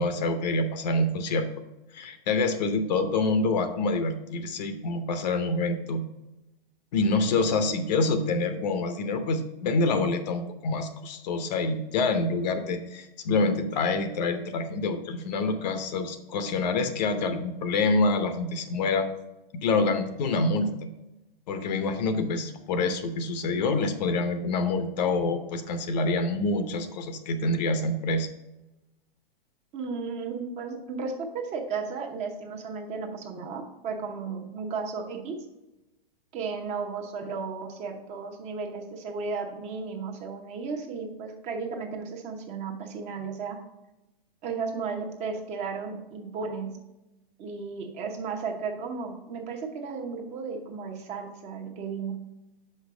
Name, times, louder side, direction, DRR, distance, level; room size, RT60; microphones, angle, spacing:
voice 1, 0.0-1.5 1.9-6.0 6.9-19.1 19.5-20.7 21.5-28.3, left 3 dB, 45° left, 9 dB, 0.8 m, -26 dB
voice 2, 29.7-35.4 36.3-43.6 44.4-46.7 47.4-52.2, right 5 dB, 25° right, 3 dB, 0.9 m, -34 dB
5.7 x 5.3 x 5.0 m, 0.97 s
hypercardioid pair, 130°, 29 cm